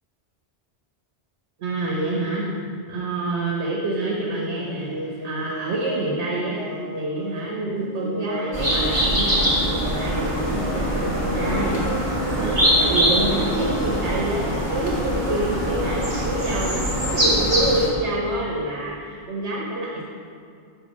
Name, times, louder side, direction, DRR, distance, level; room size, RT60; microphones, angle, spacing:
voice 1, 1.6-2.5 2.9-6.7 6.9-11.8 12.3-20.0, right 2 dB, 75° right, -3 dB, 1.2 m, -27 dB
sound 1, 3.9-4.3 4.6-7.5 7.8-11.9 12.1-14.0, right 1 dB, 30° left, 0.9 m, -34 dB
sound 2, 8.5-17.9, equal, 25° right, 1.6 m, -23 dB
5.8 x 5.3 x 6.2 m, 2.3 s
omnidirectional pair, 1.1 m